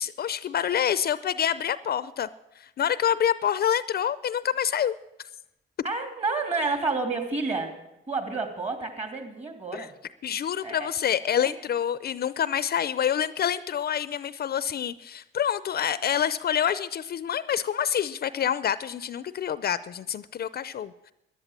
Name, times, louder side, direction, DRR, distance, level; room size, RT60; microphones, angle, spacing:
voice 1, 0.0-2.3 2.6-5.0 9.7-9.9 10.2-21.1, left 9 dB, 50° left, 16 dB, 0.6 m, -27 dB
voice 2, 5.8-7.8 8.1-9.9 10.6-10.9, right 3 dB, 35° right, 6 dB, 3.0 m, -29 dB
13.0 x 11.0 x 7.4 m, 0.87 s
cardioid pair, 90°, 20 cm